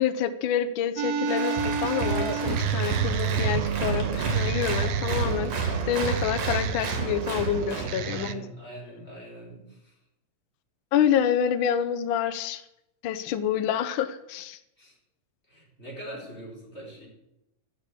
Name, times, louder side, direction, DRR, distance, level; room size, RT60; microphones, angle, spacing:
voice 1, 0.0-8.4 10.9-12.6 13.0-14.6, left 9 dB, 80° left, 10 dB, 1.1 m, -27 dB
sound 1, 1.0-8.3, right 9 dB, 75° right, 1.6 m, -30 dB
Applause, 1.3-7.9, right 4 dB, 60° right, 3.2 m, -30 dB
voice 2, 7.7-10.0 14.8-15.0 15.5-17.1, right 1 dB, 20° left, -4 dB, 4.3 m, -42 dB
11.5 x 7.0 x 8.3 m, 0.87 s
omnidirectional pair, 3.3 m